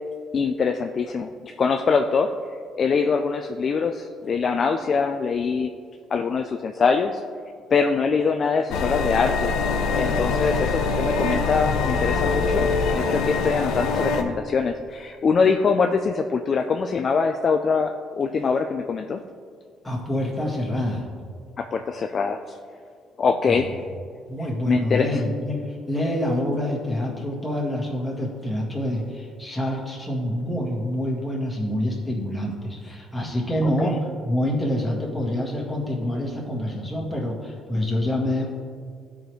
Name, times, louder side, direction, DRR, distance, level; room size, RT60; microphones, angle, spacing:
voice 1, 0.3-2.3 2.7-5.7 6.1-7.2 7.7-9.5 9.9-19.2 21.6-22.4 23.2-23.8 24.7-25.2 33.6-33.9, left 5 dB, 40° left, 5 dB, 0.3 m, -23 dB
sound 1, 8.7-14.2, left 4 dB, 85° left, 0.6 m, -23 dB
voice 2, 19.8-21.1 23.5-23.7 24.3-34.0 34.2-38.4, left 1 dB, 10° left, -3 dB, 1.7 m, -26 dB
13.5 x 4.9 x 3.1 m, 2.1 s
cardioid pair, 125°, 0 cm